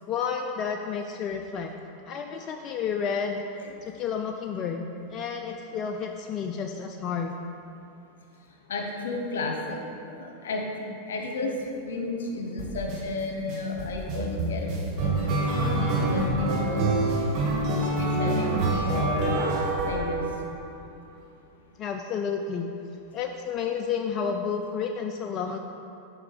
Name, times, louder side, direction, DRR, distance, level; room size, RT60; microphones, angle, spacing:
voice 1, 0.1-1.7 2.0-3.4 3.8-7.4 21.8-22.7 23.1-25.6, left 6 dB, 40° left, 4 dB, 0.4 m, -31 dB
voice 2, 8.7-9.8 10.1-10.6 11.1-11.5 11.8-15.1 15.7-17.3 17.7-19.4 19.9-20.2, left 3 dB, 75° left, 1 dB, 1.1 m, -33 dB
sound 1, 12.6-13.0 13.5-20.7, right 2 dB, 50° right, 1.3 m, -26 dB
6.6 x 5.4 x 4.3 m, 2.6 s
hypercardioid pair, 100°, 0 cm